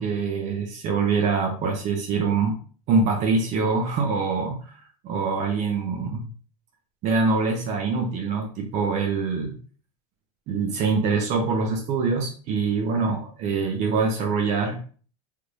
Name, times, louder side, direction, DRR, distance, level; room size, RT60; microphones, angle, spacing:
voice 1, 0.0-2.6 2.9-4.7 5.0-6.3 7.0-9.5 10.5-14.8, right 4 dB, 35° right, 3 dB, 0.6 m, -24 dB
3.3 x 2.6 x 3.2 m, 0.41 s
supercardioid pair, 140°, 19 cm